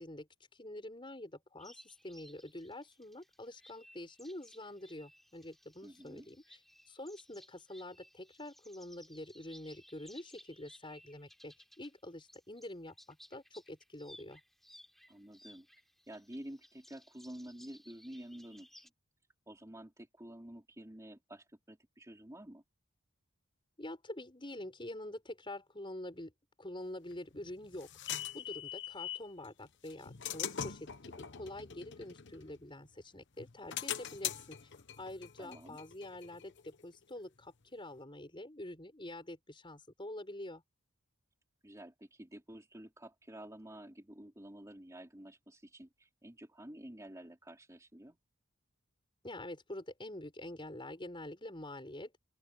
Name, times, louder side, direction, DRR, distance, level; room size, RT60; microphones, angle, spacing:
voice 1, 0.0-6.4 6.9-14.4 23.8-26.3 26.6-34.6 35.0-40.6 49.2-52.1, left 1 dB, 25° left, 6.0 m, -46 dB
sound 1, 1.6-12.0 12.3-18.9, equal, ahead, 6.0 m, -60 dB
voice 2, 5.8-6.3 15.1-15.7 16.1-18.7 19.5-22.6 35.4-35.8 41.6-48.2, right 1 dB, 15° right, 3.2 m, -50 dB
sound 2, 27.1-29.3 29.9-33.0 33.4-36.8, left 9 dB, 55° left, 1.0 m, -42 dB
open air
head